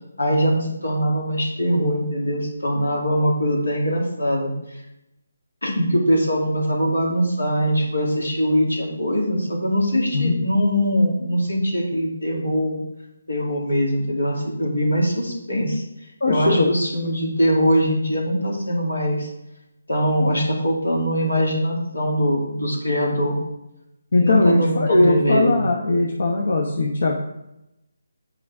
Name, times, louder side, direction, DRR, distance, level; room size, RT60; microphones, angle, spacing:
voice 1, 0.2-4.5 5.6-12.8 13.3-15.8 16.2-19.3 19.9-23.4 24.2-25.6, equal, 90° left, -1 dB, 2.2 m, -22 dB
voice 2, 10.1-10.4 16.2-16.7 24.1-27.2, left 2 dB, 70° left, 0 dB, 1.0 m, -19 dB
8.3 x 5.2 x 3.6 m, 0.88 s
figure-of-eight pair, 155°, 0 cm